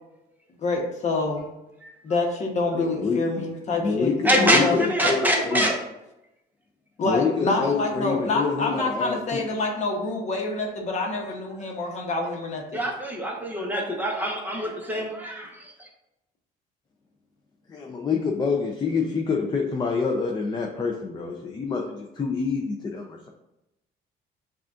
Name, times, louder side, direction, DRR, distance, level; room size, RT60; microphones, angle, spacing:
voice 1, 0.6-1.4 2.0-4.8 7.0-12.9, left 3 dB, 45° left, 1 dB, 1.0 m, -27 dB
voice 2, 2.7-5.2 5.4-5.7 7.0-9.4 17.7-23.3, left 4 dB, 25° left, 1 dB, 0.5 m, -27 dB
voice 3, 4.2-5.8 12.7-15.5, equal, 10° right, -1 dB, 1.0 m, -24 dB
7.2 x 2.4 x 2.5 m, 0.92 s
cardioid pair, 110°, 17 cm